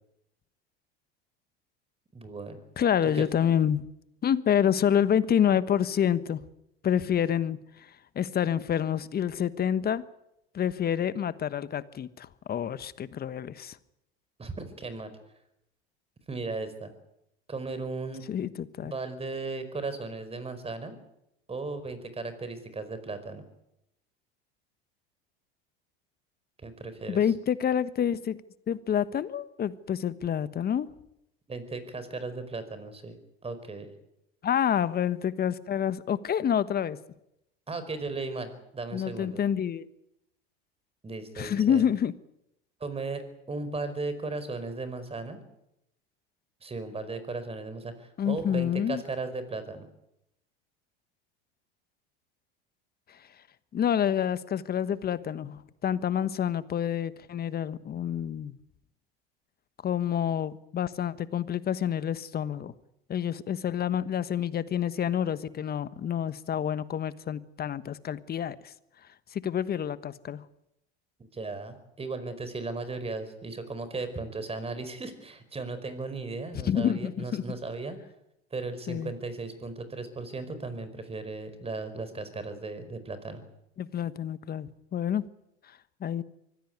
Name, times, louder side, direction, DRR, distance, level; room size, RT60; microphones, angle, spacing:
voice 1, 2.1-2.6 3.0-3.2 14.4-15.1 16.3-16.9 17.5-18.2 18.8-21.0 21.5-23.4 26.6-27.3 31.5-33.2 33.4-33.9 37.7-39.4 41.0-41.8 42.8-45.4 46.6-49.9 71.2-78.0 78.5-83.4, right 3 dB, 20° right, 4.9 m, -36 dB
voice 2, 2.8-3.8 4.2-6.4 6.8-7.6 8.1-10.0 10.5-13.8 18.3-18.9 27.1-28.4 28.7-30.9 34.4-37.0 38.9-39.9 41.4-42.1 48.2-49.0 53.7-58.5 59.8-62.7 63.1-68.6 69.3-70.4 76.6-77.4 78.9-79.1 83.8-85.2 86.0-86.2, left 9 dB, 30° left, 1.2 m, -28 dB
24.0 x 16.5 x 9.6 m
hypercardioid pair, 85°, 30 cm